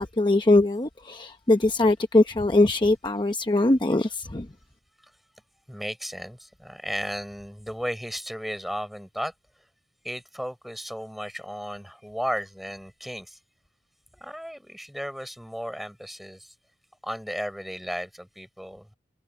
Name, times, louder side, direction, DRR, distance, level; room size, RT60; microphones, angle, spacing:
voice 1, 0.0-4.5, left 2 dB, 25° left, 0.8 m, -21 dB
voice 2, 5.7-9.3 10.0-13.4 14.1-16.5 17.0-18.9, equal, ahead, 6.1 m, -34 dB
head